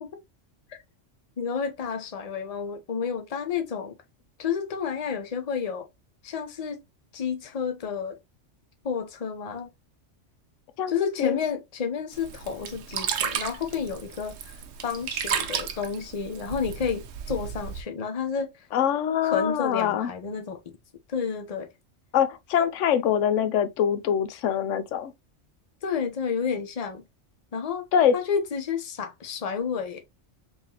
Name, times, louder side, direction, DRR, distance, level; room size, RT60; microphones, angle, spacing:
voice 1, 1.4-3.9 4.4-5.9 6.2-6.8 7.1-8.2 8.8-9.7 10.9-14.6 14.8-18.5 19.2-20.6 21.1-21.7 25.8-27.0 27.5-27.9 28.1-30.1, left 6 dB, 40° left, 0.7 m, -30 dB
Sink (filling or washing), 12.1-17.8, right 7 dB, 80° right, 1.0 m, -33 dB
voice 2, 18.7-20.1 22.1-25.1 27.9-28.2, left 9 dB, 80° left, 0.9 m, -24 dB
3.5 x 3.5 x 2.8 m
omnidirectional pair, 1.3 m